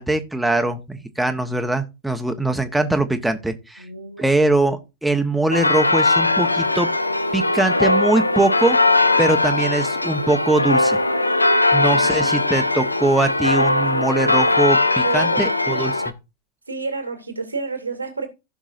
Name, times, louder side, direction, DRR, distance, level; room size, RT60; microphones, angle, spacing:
voice 1, 0.0-3.8 4.2-6.9 7.3-8.8 9.2-11.0 11.7-15.9, right 2 dB, 5° right, 1.2 m, -21 dB
voice 2, 3.8-4.4 11.9-12.5 15.0-15.4 15.7-15.8 16.7-18.3, right 4 dB, 80° right, 2.5 m, -30 dB
sound 1, 5.5-16.1, left 2 dB, 85° left, 0.7 m, -19 dB
15.5 x 6.2 x 2.6 m
figure-of-eight pair, 90°, 0 cm